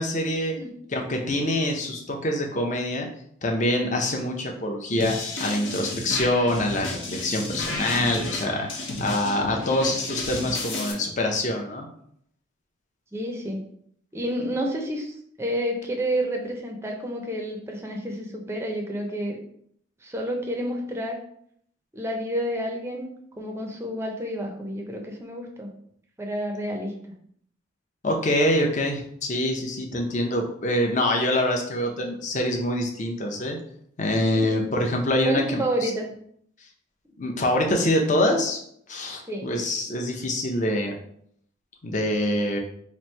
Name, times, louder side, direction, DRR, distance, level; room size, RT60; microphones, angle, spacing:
voice 1, 0.0-0.6 0.9-3.1 3.4-8.7 9.0-11.9 28.0-33.6 34.0-35.9 37.2-38.6 38.9-40.9 41.8-42.6, left 1 dB, 40° left, 2 dB, 0.6 m, -25 dB
sound 1, 5.0-10.9, left 2 dB, 75° left, 0.9 m, -32 dB
voice 2, 13.1-13.6 14.1-19.4 20.0-21.2 21.9-23.1 23.4-25.7 26.2-26.9 34.4-34.6 35.2-36.1 39.3-39.5, equal, 15° right, 2 dB, 0.5 m, -29 dB
3.0 x 2.6 x 4.4 m, 0.67 s
head